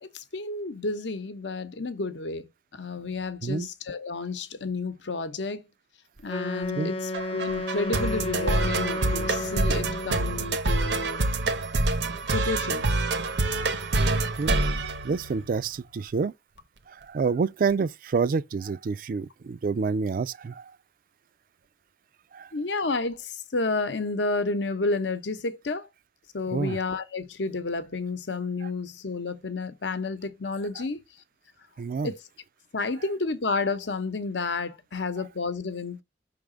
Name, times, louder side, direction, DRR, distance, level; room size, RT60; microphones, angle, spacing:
voice 1, 0.0-5.7 6.2-11.2 12.3-12.9 22.5-25.9 26.3-31.0 32.0-32.2 32.7-36.0, left 3 dB, 80° left, 0.9 m, -31 dB
Wind instrument woodwind instrument, 6.3-10.4, left 2 dB, 30° left, 0.6 m, -33 dB
sound 1, 7.1-15.7, right 2 dB, 70° right, 0.8 m, -27 dB
voice 2, 15.0-16.3 16.9-20.7 22.3-22.5 26.5-26.8 31.8-32.1, right 5 dB, 50° right, 0.3 m, -28 dB
5.8 x 3.5 x 5.0 m
head